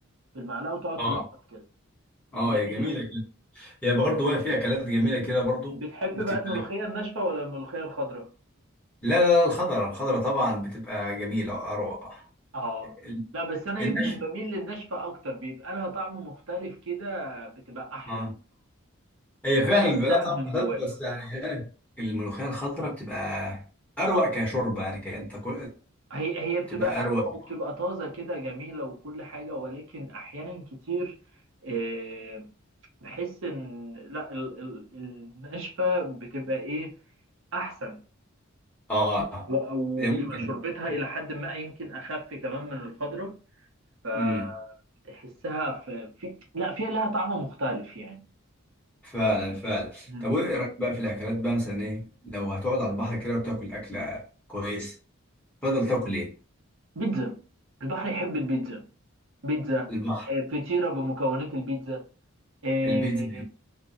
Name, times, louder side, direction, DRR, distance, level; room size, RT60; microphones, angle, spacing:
voice 1, 0.3-1.2 1.5-1.6 2.4-2.9 5.7-8.3 12.5-13.0 13.3-18.3 19.5-20.8 26.1-31.2 31.6-32.5 33.0-36.9 37.5-38.0 39.5-43.4 44.0-44.7 45.1-48.2 50.1-50.3 56.9-57.4 57.8-58.9 59.4-60.0 60.3-62.0 62.6-63.4, right 1 dB, 70° right, 0.8 m, -32 dB
voice 2, 2.3-3.2 3.6-5.8 6.5-6.6 9.0-12.2 13.1-13.2 13.8-14.2 18.1-18.3 19.4-21.7 22.0-23.6 24.0-25.7 26.7-27.2 38.9-39.5 40.0-40.6 44.1-44.4 49.0-52.1 52.3-54.2 54.5-54.9 55.6-56.3 59.9-60.2 62.8-63.4, left 1 dB, 5° left, 1.2 m, -27 dB
2.6 x 2.1 x 2.5 m
head